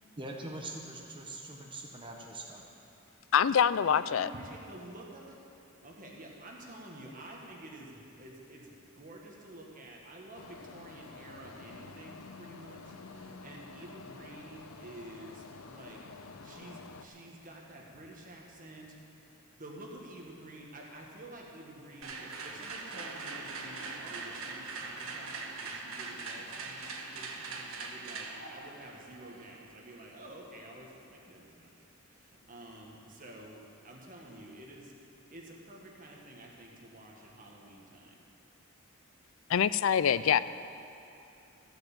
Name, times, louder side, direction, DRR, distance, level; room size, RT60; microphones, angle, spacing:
voice 1, 0.2-2.6, right 2 dB, 25° right, 0 dB, 1.1 m, -43 dB
voice 2, 3.3-4.3 39.5-40.4, left 8 dB, 65° left, 15 dB, 0.4 m, -25 dB
voice 3, 3.9-5.4 5.8-16.0 16.4-18.9 19.6-31.7 32.1-38.1 40.0-40.4, right 1 dB, 40° right, -1 dB, 1.6 m, -50 dB
sound 1, 10.3-17.1, left 3 dB, 85° left, 0.7 m, -49 dB
sound 2, 22.0-30.0, right 4 dB, 80° right, 1.3 m, -42 dB
14.5 x 7.9 x 7.3 m, 2.9 s
head